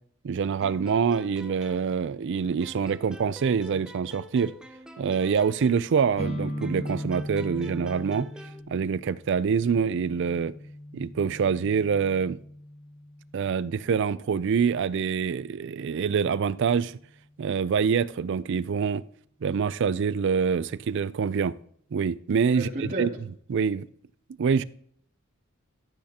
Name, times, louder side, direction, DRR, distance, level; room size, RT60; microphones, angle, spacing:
voice 1, 0.2-4.5 5.0-8.3 8.7-10.5 10.9-12.4 13.3-17.0 17.4-19.0 19.4-21.6 21.9-23.1 23.5-23.9 24.4-24.6, right 6 dB, 60° right, 0.4 m, -25 dB
sound 1, 0.6-2.3 2.6-6.2 6.6-8.6, equal, 5° right, 0.6 m, -47 dB
sound 2, 6.2-13.8, equal, 30° left, 0.8 m, -38 dB
voice 2, 22.5-23.2, right 1 dB, 40° right, 2.6 m, -32 dB
13.5 x 8.7 x 2.9 m
head